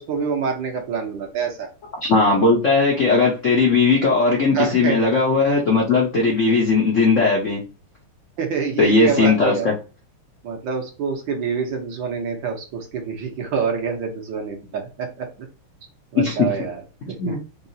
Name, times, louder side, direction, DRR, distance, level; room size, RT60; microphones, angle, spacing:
voice 1, 0.0-1.7 4.5-5.0 8.4-9.7 10.4-15.5 16.1-17.4, right 6 dB, 65° right, 3 dB, 1.5 m, -27 dB
voice 2, 2.0-7.6 8.8-9.5 16.2-16.3 17.2-17.4, left 3 dB, 60° left, -2 dB, 0.8 m, -18 dB
4.7 x 2.4 x 2.7 m, 0.33 s
omnidirectional pair, 2.3 m